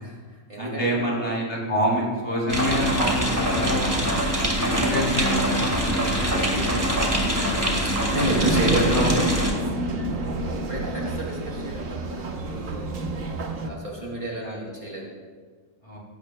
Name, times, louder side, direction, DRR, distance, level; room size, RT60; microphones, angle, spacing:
voice 1, 0.0-1.3 7.8-9.2 10.5-12.9 13.2-13.3 13.6-15.1, right 1 dB, 40° right, -2 dB, 2.4 m, -31 dB
voice 2, 0.6-4.1 4.6-7.2 8.3-9.3 9.7-10.3 14.3-14.6 15.8-16.0, equal, 25° left, -4 dB, 3.2 m, -28 dB
sound 1, 2.5-9.5, equal, 15° right, 1.8 m, -24 dB
sound 2, 8.1-13.7, right 2 dB, 85° right, 1.5 m, -28 dB
17.0 x 15.5 x 2.2 m, 1.5 s
omnidirectional pair, 1.3 m